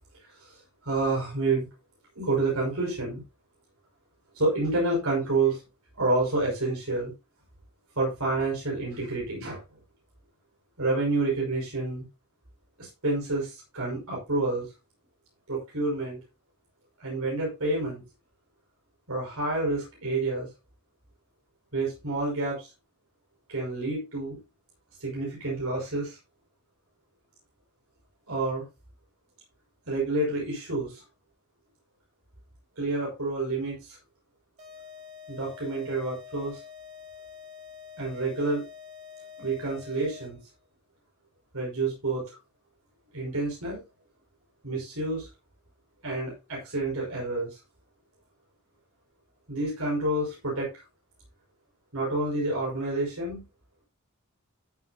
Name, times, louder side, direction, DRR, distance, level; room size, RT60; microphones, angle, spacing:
voice 1, 0.8-1.7 2.2-3.2 4.3-5.6 6.0-7.1 8.0-9.6 10.8-12.0 12.8-14.7 15.5-16.2 17.0-18.0 19.1-20.5 21.7-22.7 23.5-24.4 25.0-26.2 28.3-28.7 29.9-31.0 32.8-34.0 35.3-36.6 38.0-38.6 39.4-40.4 41.5-42.3 43.1-43.8 44.6-45.3 46.0-47.6 49.5-50.7 51.9-53.4, right 2 dB, 75° right, -3 dB, 5.7 m, -29 dB
sound 1, 34.6-40.5, left 7 dB, 30° right, 4.6 m, -46 dB
14.5 x 7.8 x 2.9 m, 0.26 s
head